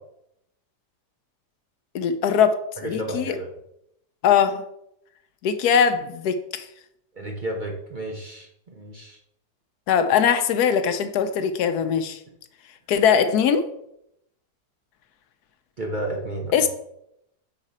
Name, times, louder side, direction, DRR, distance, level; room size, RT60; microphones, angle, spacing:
voice 1, 1.9-3.4 4.2-4.6 5.4-6.7 9.9-12.2 12.9-13.7 16.5-16.7, left 7 dB, 80° left, 9 dB, 1.1 m, -21 dB
voice 2, 2.8-3.5 7.1-9.2 15.8-16.7, right 1 dB, 35° right, 0 dB, 0.9 m, -32 dB
6.4 x 4.9 x 4.2 m, 0.78 s
omnidirectional pair, 1.7 m